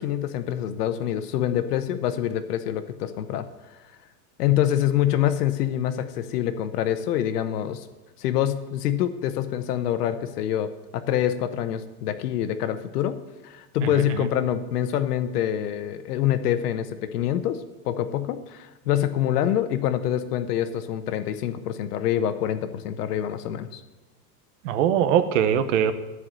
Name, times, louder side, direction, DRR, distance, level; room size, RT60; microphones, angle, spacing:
voice 1, 0.0-3.5 4.4-7.9 8.2-13.2 13.4-23.8, left 11 dB, 90° left, 11 dB, 1.0 m, -26 dB
voice 2, 13.8-14.2 24.6-25.9, right 9 dB, 55° right, 12 dB, 0.8 m, -22 dB
12.5 x 4.8 x 7.4 m, 1.2 s
supercardioid pair, 170°, 45 cm